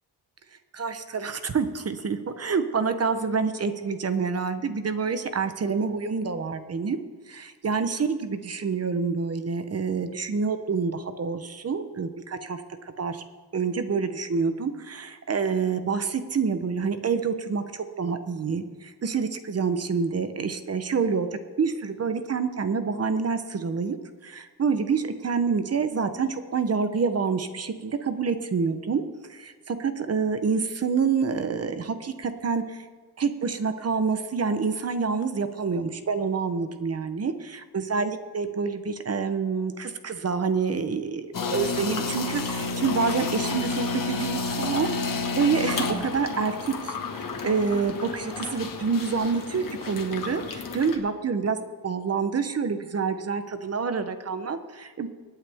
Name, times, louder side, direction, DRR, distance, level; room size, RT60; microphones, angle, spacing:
voice 1, 0.7-7.0 7.3-13.2 13.5-21.3 21.6-24.0 24.2-29.0 29.3-32.8 33.2-46.9 47.4-51.6 51.8-55.1, right 5 dB, 35° right, 9 dB, 0.9 m, -27 dB
sound 1, 41.3-51.0, left 4 dB, 55° left, 1.6 m, -31 dB
24.5 x 9.1 x 3.5 m, 1.5 s
wide cardioid pair, 160°, 40 cm